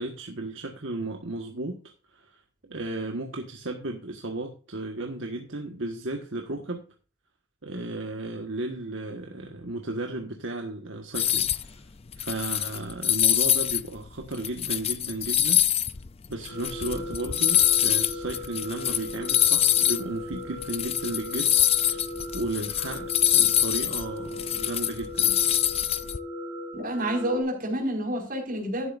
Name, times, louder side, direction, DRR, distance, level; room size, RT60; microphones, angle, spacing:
voice 1, 0.0-1.8 2.1-2.4 2.7-6.8 7.6-11.8 12.1-15.6 16.3-21.6 21.9-22.0 22.3-25.4, right 2 dB, 65° right, 1.5 m, -34 dB
sound 1, 11.1-11.7 12.1-13.8 14.2-20.0 20.3-20.4 20.6-26.2, left 11 dB, 30° left, 0.4 m, -24 dB
sound 2, 16.5-27.4, left 1 dB, 85° left, 3.4 m, -38 dB
voice 2, 26.7-28.9, right 1 dB, 45° right, 5.2 m, -28 dB
12.5 x 10.5 x 2.6 m
head